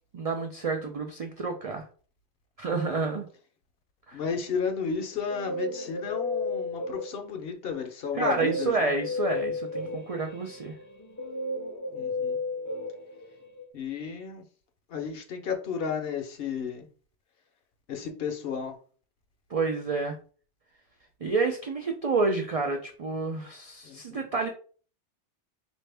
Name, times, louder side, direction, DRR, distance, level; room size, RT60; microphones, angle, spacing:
voice 1, 0.1-1.9 2.6-3.3 4.1-4.2 8.1-10.7 19.5-20.2 21.2-24.5, right 3 dB, 60° right, 3 dB, 0.3 m, -29 dB
voice 2, 4.1-8.9 11.9-12.4 13.7-14.4 14.9-16.9 17.9-18.7 23.8-24.3, left 6 dB, 60° left, 5 dB, 0.8 m, -33 dB
Guitar, 4.9-7.5 8.2-13.6, left 2 dB, 20° left, 0.4 m, -34 dB
4.1 x 2.6 x 3.3 m, 0.41 s
omnidirectional pair, 1.2 m